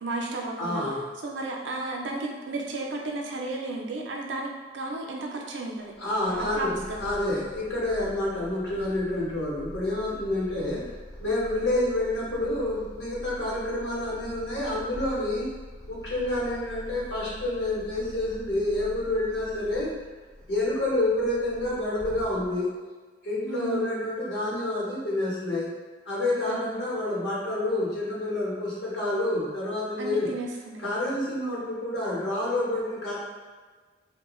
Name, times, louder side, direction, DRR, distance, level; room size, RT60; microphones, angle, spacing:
voice 1, 0.0-0.8 1.2-5.9 6.3-7.0 23.4-24.0 26.5-26.8 30.0-30.8, right 2 dB, 85° right, 0 dB, 0.4 m, -33 dB
voice 2, 0.6-1.0 6.0-10.9 11.2-15.5 15.9-19.9 20.5-22.7 23.2-25.7 26.1-30.3 30.8-33.2, left 1 dB, 75° left, -6 dB, 0.9 m, -28 dB
Purr, 5.9-22.8, equal, 20° right, 0.6 m, -44 dB
3.0 x 2.1 x 2.3 m, 1.4 s
head